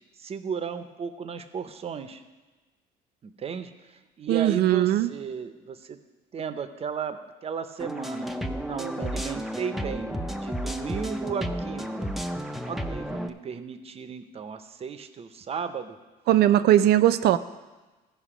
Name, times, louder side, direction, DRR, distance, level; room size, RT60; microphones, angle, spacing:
voice 1, 0.2-2.2 3.2-6.0 6.3-8.3 8.6-12.1 12.7-16.0, right 6 dB, 35° right, 10 dB, 0.7 m, -35 dB
voice 2, 4.3-5.1 16.3-17.4, right 13 dB, 70° right, 13 dB, 0.5 m, -19 dB
sound 1, 7.8-13.3, equal, ahead, 0.6 m, -32 dB
15.0 x 5.1 x 5.0 m, 1.2 s
cardioid pair, 110°, 17 cm